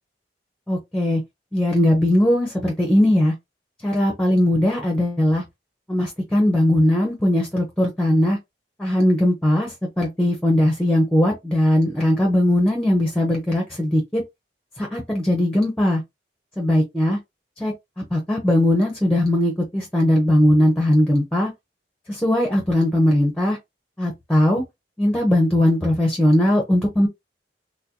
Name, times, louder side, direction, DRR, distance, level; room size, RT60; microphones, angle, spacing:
voice 1, 0.7-1.2 1.5-3.3 3.8-5.4 5.9-8.4 8.8-14.2 14.8-16.0 16.6-17.2 17.6-17.7 18.1-21.5 22.1-23.6 24.0-24.6 25.0-27.1, left 1 dB, 5° left, 0.8 m, -19 dB
4.3 x 2.2 x 2.7 m
head